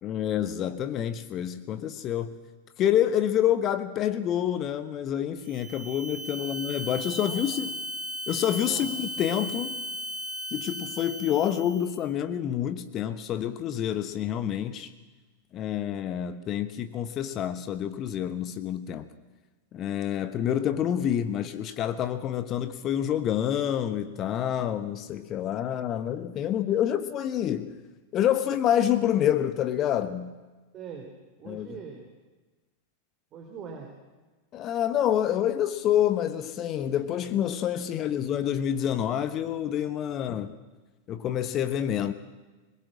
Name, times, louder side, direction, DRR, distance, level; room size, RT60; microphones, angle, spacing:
voice 1, 0.0-2.4 2.8-7.7 8.3-9.8 10.5-14.9 15.5-19.1 19.7-27.7 28.1-30.3 31.5-31.8 34.5-40.5 41.1-42.1, left 10 dB, 30° left, 11 dB, 1.2 m, -27 dB
sound 1, 5.4-12.0, right 1 dB, 50° right, 3.2 m, -36 dB
voice 2, 7.3-7.7 8.6-8.9 30.7-31.1 31.4-32.1 33.3-33.9 38.0-38.1, right 6 dB, 30° right, 3 dB, 3.5 m, -42 dB
22.0 x 21.5 x 7.6 m, 1.3 s
figure-of-eight pair, 90°, 0 cm